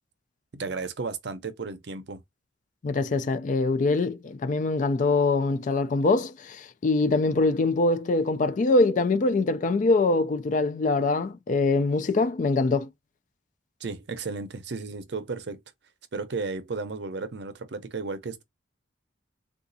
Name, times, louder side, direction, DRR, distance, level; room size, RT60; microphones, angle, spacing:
voice 1, 0.5-2.2 13.8-15.6 16.1-18.4, right 4 dB, 60° right, 0.6 m, -34 dB
voice 2, 2.8-12.9, left 3 dB, 40° left, 0.3 m, -23 dB
3.8 x 2.4 x 2.6 m
head